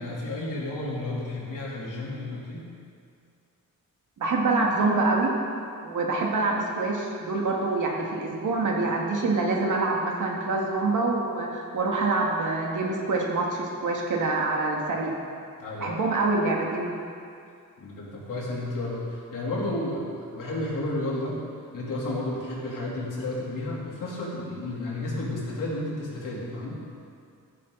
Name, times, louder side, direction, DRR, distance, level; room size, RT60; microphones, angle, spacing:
voice 1, 0.0-2.7 15.6-16.1 17.8-21.4 21.7-26.8, left 1 dB, 70° left, -5 dB, 3.7 m, -32 dB
voice 2, 4.2-5.4 5.8-15.2 15.8-16.9, right 3 dB, 65° right, -1 dB, 2.3 m, -26 dB
14.5 x 13.5 x 4.2 m, 2.3 s
wide cardioid pair, 155°, 34 cm